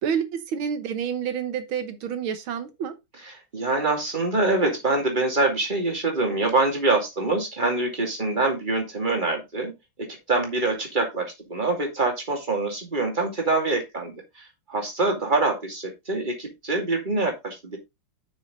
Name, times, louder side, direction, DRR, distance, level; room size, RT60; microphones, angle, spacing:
voice 1, 0.0-2.9, right 7 dB, 80° right, 1.9 m, -28 dB
voice 2, 3.5-9.7 10.1-17.8, right 2 dB, 25° right, 2.7 m, -25 dB
7.3 x 6.3 x 3.9 m
omnidirectional pair, 2.2 m